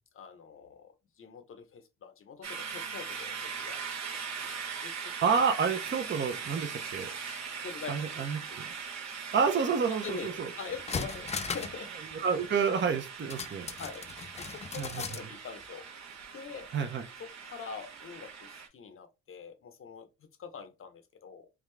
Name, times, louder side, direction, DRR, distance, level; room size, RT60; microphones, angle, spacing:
voice 1, 0.1-5.1 7.6-8.6 10.0-12.1 13.8-14.1 14.4-15.8 16.3-16.7 17.2-21.5, left 6 dB, 45° left, 0.8 m, -45 dB
sound 1, 2.4-18.7, right 6 dB, 65° right, 0.9 m, -41 dB
voice 2, 5.2-7.1 7.9-8.6 9.3-10.5 12.1-13.7 14.8-15.0 16.7-17.0, right 6 dB, 40° right, 0.7 m, -29 dB
sound 2, 10.3-10.4 10.7-11.8 12.1-12.2 13.3-15.3 15.6-15.7, left 5 dB, 25° left, 0.3 m, -37 dB
3.5 x 2.4 x 3.3 m
cardioid pair, 90°, 30 cm